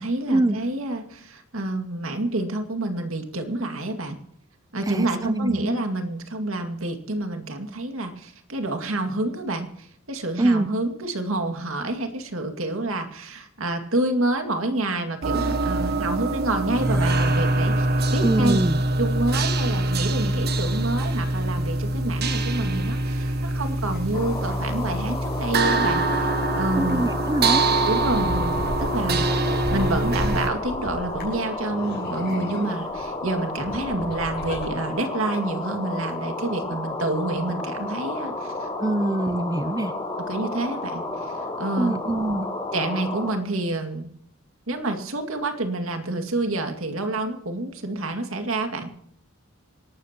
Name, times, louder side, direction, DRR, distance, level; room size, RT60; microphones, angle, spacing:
voice 1, 0.0-4.2 4.7-18.6 19.0-27.1 27.9-29.3 29.7-38.7 40.3-41.0 41.6-41.9 42.7-44.1 44.7-48.9, right 2 dB, 85° right, 6 dB, 2.2 m, -28 dB
voice 2, 4.9-5.8 10.4-10.7 18.2-18.8 26.8-27.7 38.8-39.9 41.8-42.5, right 1 dB, 20° right, 13 dB, 0.5 m, -24 dB
sound 1, 15.2-30.5, right 2 dB, 50° right, 1.3 m, -24 dB
sound 2, 23.6-26.2 26.9-27.0 27.2-34.7, equal, 50° left, 6.5 m, -37 dB
sound 3, 24.1-43.3, left 2 dB, 25° left, 4.8 m, -32 dB
26.5 x 12.5 x 3.0 m, 0.69 s
head